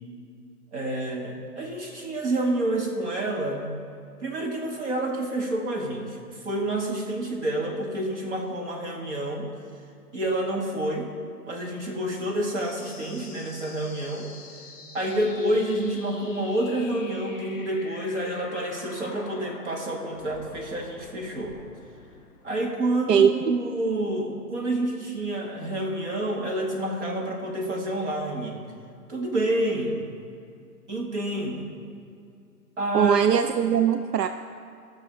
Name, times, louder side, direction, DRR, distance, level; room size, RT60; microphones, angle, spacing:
voice 1, 0.7-3.7 4.2-9.5 10.1-11.1 11.5-14.3 14.9-21.6 22.4-28.6 29.1-30.1 30.9-31.7 32.8-33.2, right 1 dB, 45° right, 0 dB, 1.8 m, -28 dB
sound 1, 12.5-23.5, left 3 dB, 20° left, 1.4 m, -46 dB
voice 2, 23.1-23.5 32.9-34.3, right 8 dB, 80° right, 9 dB, 0.6 m, -20 dB
13.5 x 6.5 x 5.2 m, 2.4 s
hypercardioid pair, 170°, 48 cm